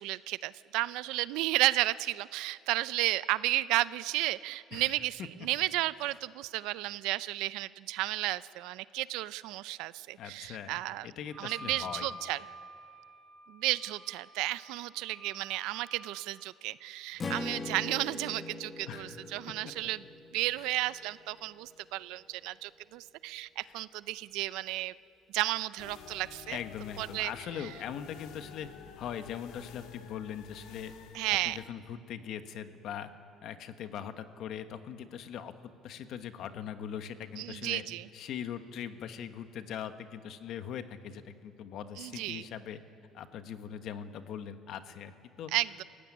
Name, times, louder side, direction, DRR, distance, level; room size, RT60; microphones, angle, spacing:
voice 1, 0.0-11.1 11.4-12.4 13.5-20.0 20.3-24.9 25.3-26.6 27.0-27.3 31.1-31.6 37.4-38.0 42.0-42.5 45.5-45.8, right 17 dB, 90° right, 17 dB, 0.5 m, -33 dB
voice 2, 10.2-10.8 11.0-12.1 18.9-19.3 20.6-20.7 23.6-23.8 26.5-28.7 29.0-30.9 31.4-33.1 33.4-35.5 35.8-37.8 38.1-42.8 43.1-45.5, left 9 dB, 50° left, 9 dB, 1.2 m, -41 dB
Wind instrument woodwind instrument, 11.3-16.3, equal, 25° right, 2.1 m, -48 dB
Strum, 17.2-21.5, left 3 dB, 20° left, 1.3 m, -42 dB
sound 1, 25.8-31.7, left 7 dB, 75° left, 2.0 m, -50 dB
27.5 x 15.5 x 9.9 m, 2.5 s
cardioid pair, 170°, 0 cm